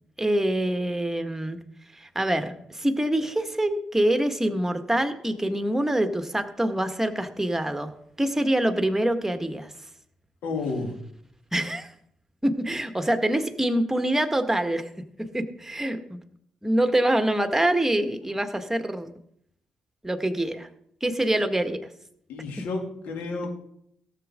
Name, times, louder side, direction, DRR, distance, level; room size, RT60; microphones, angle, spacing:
voice 1, 0.2-1.6 2.0-7.9 8.2-9.7 11.5-11.9 12.4-14.9 15.2-16.2 16.6-19.1 20.0-20.7 21.0-21.8, right 1 dB, 10° right, 8 dB, 1.7 m, -25 dB
voice 2, 10.4-11.0 22.3-23.5, left 3 dB, 75° left, 1 dB, 2.7 m, -31 dB
18.0 x 7.4 x 3.8 m, 0.70 s
hypercardioid pair, 40°, 3 cm